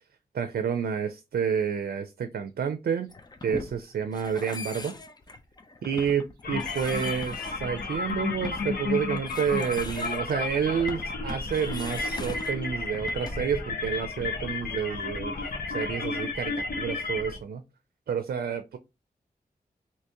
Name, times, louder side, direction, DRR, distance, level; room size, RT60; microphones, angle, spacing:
voice 1, 0.3-3.1 3.4-5.0 5.8-15.3 15.7-17.6 18.1-18.8, right 7 dB, 90° right, 0.4 m, -29 dB
sound 1, 3.1-13.6, left 3 dB, 25° left, 0.5 m, -42 dB
sound 2, 6.4-17.4, left 3 dB, 80° left, 0.9 m, -32 dB
2.9 x 2.8 x 3.4 m
wide cardioid pair, 130°, 16 cm